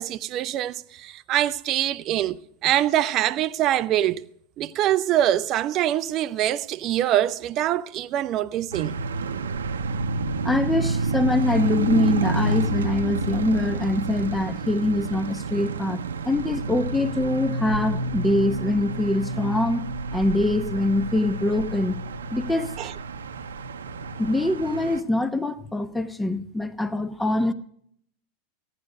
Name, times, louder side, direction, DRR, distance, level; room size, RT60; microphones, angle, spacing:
voice 1, 0.0-4.2 4.6-9.0 22.8-22.9, right 12 dB, 45° right, 0.5 m, -24 dB
sound 1, 8.7-25.0, right 3 dB, 85° right, 0.8 m, -29 dB
voice 2, 10.4-16.0 16.3-22.0 22.3-22.7 24.2-27.5, left 1 dB, 5° left, 1.0 m, -24 dB
15.0 x 10.0 x 5.1 m
hypercardioid pair, 95°, 0 cm